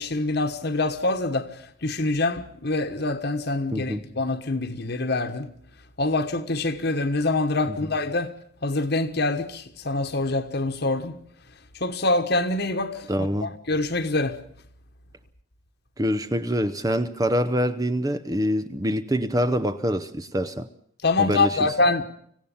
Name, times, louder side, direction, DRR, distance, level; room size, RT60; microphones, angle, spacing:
voice 1, 0.0-5.5 6.0-8.3 8.6-11.2 11.8-14.4 21.0-22.0, left 2 dB, 55° left, 1.4 m, -25 dB
voice 2, 3.7-4.0 13.1-13.5 16.0-20.7 21.2-21.6, equal, 15° right, 0.8 m, -25 dB
25.5 x 16.5 x 7.2 m
head